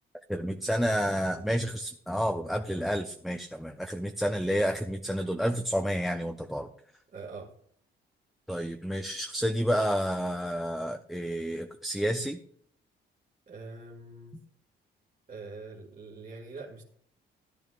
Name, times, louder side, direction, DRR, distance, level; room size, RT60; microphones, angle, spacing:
voice 1, 0.3-6.7 8.5-12.4, equal, ahead, 6 dB, 0.6 m, -30 dB
voice 2, 7.1-7.5 13.5-14.4 15.3-16.8, right 3 dB, 40° right, -2 dB, 2.0 m, -43 dB
14.0 x 10.5 x 2.4 m, 0.62 s
cardioid pair, 90°, 20 cm